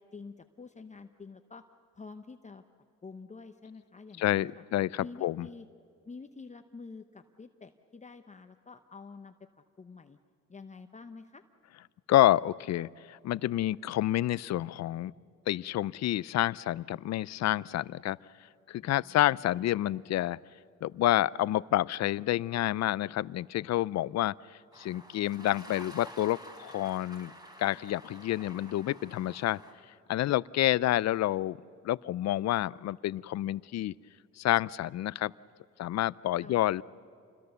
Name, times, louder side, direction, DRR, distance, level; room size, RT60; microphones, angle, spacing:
voice 1, 0.0-1.6 1.9-2.6 3.0-4.6 5.0-5.7 6.1-9.3 9.8-10.2 10.5-11.4 18.8-19.4 36.4-36.6, left 4 dB, 25° left, 7 dB, 0.9 m, -48 dB
voice 2, 4.2-5.5 12.1-15.1 15.5-18.2 18.7-20.4 20.8-27.3 27.6-29.6 30.1-31.6 31.8-33.9 34.4-35.3 35.8-36.8, left 14 dB, 60° left, 21 dB, 0.5 m, -29 dB
sound 1, 24.7-29.7, equal, 15° right, 4.1 m, -50 dB
28.0 x 21.5 x 6.9 m, 2.4 s
cardioid pair, 90°, 30 cm